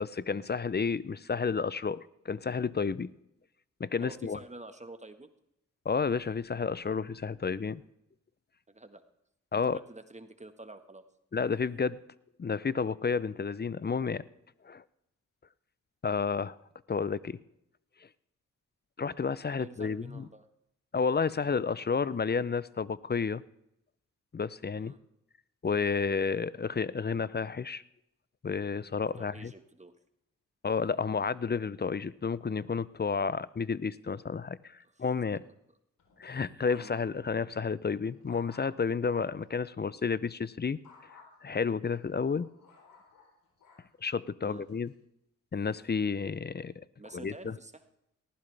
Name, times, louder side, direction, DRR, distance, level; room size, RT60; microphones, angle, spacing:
voice 1, 0.0-3.1 3.8-4.4 5.8-7.8 9.5-9.8 11.3-12.0 12.4-14.2 14.6-14.8 16.0-16.6 16.9-17.4 19.0-20.3 20.9-23.4 24.3-24.9 25.6-27.8 28.4-29.5 30.6-35.4 36.2-40.8 41.4-42.5 44.0-44.9 45.5-46.7 47.1-47.5, left 5 dB, 30° left, 19 dB, 0.7 m, -31 dB
voice 2, 4.0-5.3 8.7-9.0 9.7-11.0 19.6-20.4 24.8-25.0 29.2-29.9 34.9-35.0 36.7-36.9 44.4-44.6 47.0-47.8, right 2 dB, 20° right, 8 dB, 1.6 m, -48 dB
sound 1, 36.0-37.3 37.8-39.5 40.8-41.3 41.9-43.9 44.5-44.9, left 4 dB, 80° left, 3.9 m, -57 dB
19.0 x 14.5 x 3.5 m, 0.82 s
supercardioid pair, 45°, 33 cm